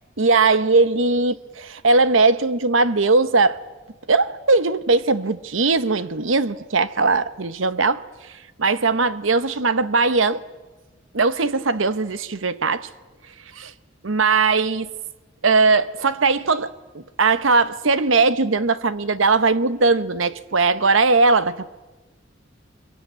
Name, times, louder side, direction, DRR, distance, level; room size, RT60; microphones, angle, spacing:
voice 1, 0.2-3.6 4.1-10.4 11.1-12.9 13.5-13.7 14.0-14.9 15.4-21.7, right 3 dB, 90° right, 1.1 m, -19 dB
24.5 x 23.0 x 9.5 m
head